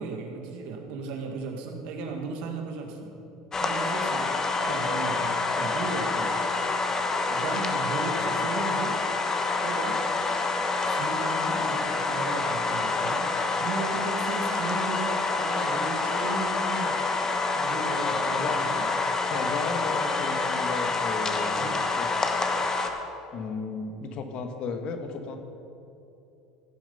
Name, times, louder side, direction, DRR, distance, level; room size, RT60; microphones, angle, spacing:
voice 1, 0.0-3.2 3.5-4.3 4.6-6.4 7.3-9.0 9.6-10.0 10.9-13.3 13.6-16.9 17.5-18.9 21.6-21.8, right 3 dB, 65° right, 3 dB, 1.9 m, -35 dB
sound 1, 3.5-22.9, left 3 dB, 25° left, 1.3 m, -27 dB
voice 2, 19.3-22.3 23.3-25.4, left 4 dB, 50° left, 6 dB, 1.4 m, -34 dB
16.0 x 7.6 x 5.6 m, 2.8 s
hypercardioid pair, 85°, 2 cm